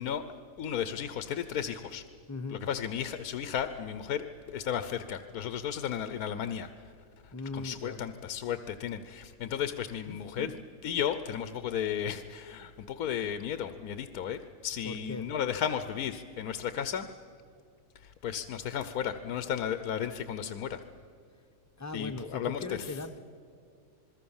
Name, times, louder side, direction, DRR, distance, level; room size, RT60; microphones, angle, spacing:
voice 1, 0.0-2.0 2.5-6.7 7.2-10.5 10.8-17.1 18.0-20.8 21.9-23.0, left 9 dB, 85° left, 11 dB, 1.3 m, -34 dB
voice 2, 2.3-2.6 7.3-8.0 10.1-10.5 14.8-15.3 21.8-23.2, left 3 dB, 15° left, 8 dB, 0.8 m, -39 dB
27.0 x 21.5 x 7.2 m, 2.4 s
omnidirectional pair, 1.5 m